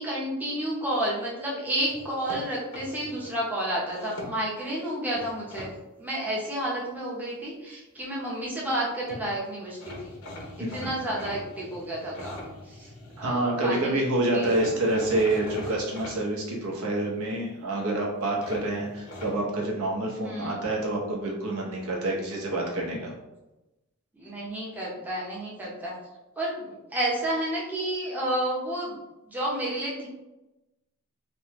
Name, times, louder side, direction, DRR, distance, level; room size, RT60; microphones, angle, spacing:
voice 1, 0.0-10.1 10.7-12.4 12.8-12.9 13.2-14.0 14.3-14.6 20.2-20.6 24.2-25.9 26.4-28.9 29.3-30.1, right 1 dB, 10° right, -5 dB, 0.6 m, -31 dB
sound 1, 1.9-3.3 3.9-4.7 5.1-5.7 8.8-8.9 9.1-9.2 9.8-13.3 14.4-16.2 18.4-19.4, left 1 dB, 70° left, 0.7 m, -41 dB
voice 2, 10.6-10.9 13.2-23.1, right 2 dB, 70° right, -1 dB, 0.7 m, -27 dB
3.3 x 2.1 x 2.9 m, 1.0 s
head